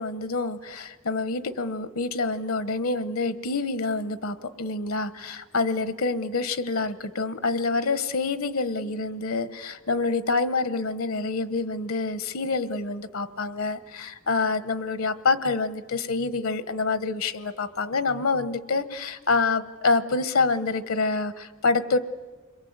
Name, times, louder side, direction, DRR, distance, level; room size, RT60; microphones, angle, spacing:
voice 1, 0.0-22.0, left 3 dB, 75° left, 14 dB, 1.0 m, -27 dB
29.0 x 22.0 x 8.1 m, 1.4 s
head